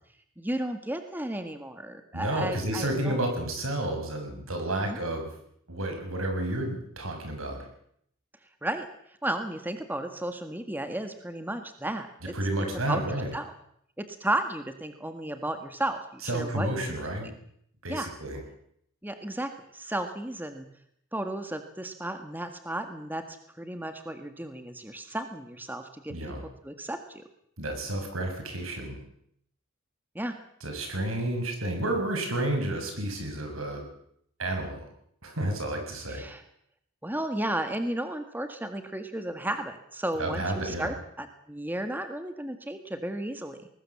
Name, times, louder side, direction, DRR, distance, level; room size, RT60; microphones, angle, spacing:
voice 1, 0.4-3.2 4.7-5.0 8.6-8.9 9.2-12.1 12.6-13.5 14.0-17.3 17.9-18.1 19.0-20.7 21.1-26.1 26.6-27.2 30.1-30.4 36.1-36.4 37.0-43.7, right 1 dB, 10° right, 7 dB, 1.7 m, -34 dB
voice 2, 2.1-5.3 5.7-7.6 12.3-13.3 16.2-17.3 17.8-18.4 26.1-26.4 27.6-29.0 30.6-33.9 34.4-34.8 35.2-36.2 40.2-40.9, right 1 dB, 85° right, 4 dB, 6.8 m, -31 dB
21.0 x 20.0 x 7.3 m, 0.70 s
head